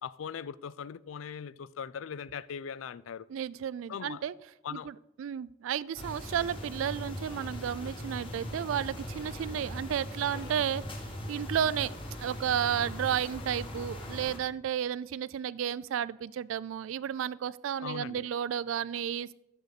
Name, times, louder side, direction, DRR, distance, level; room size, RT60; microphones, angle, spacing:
voice 1, 0.0-3.3 3.9-4.2 4.6-4.9 17.8-18.3, left 7 dB, 90° left, 0.4 m, -40 dB
voice 2, 3.3-4.3 4.7-11.9 12.2-19.3, right 9 dB, 85° right, 0.3 m, -32 dB
sound 1, 6.0-14.4, equal, 25° left, 1.8 m, -40 dB
14.5 x 6.7 x 4.1 m
head